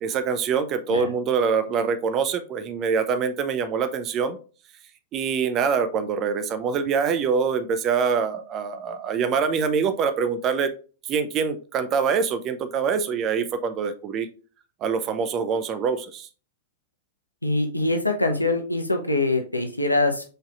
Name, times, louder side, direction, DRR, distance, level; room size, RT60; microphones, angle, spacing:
voice 1, 0.0-4.4 5.1-10.7 11.1-14.3 14.8-16.3, right 6 dB, 30° right, 11 dB, 0.6 m, -24 dB
voice 2, 17.4-20.2, left 2 dB, 90° left, 4 dB, 0.8 m, -23 dB
5.2 x 4.1 x 2.4 m, 0.37 s
figure-of-eight pair, 100°, 0 cm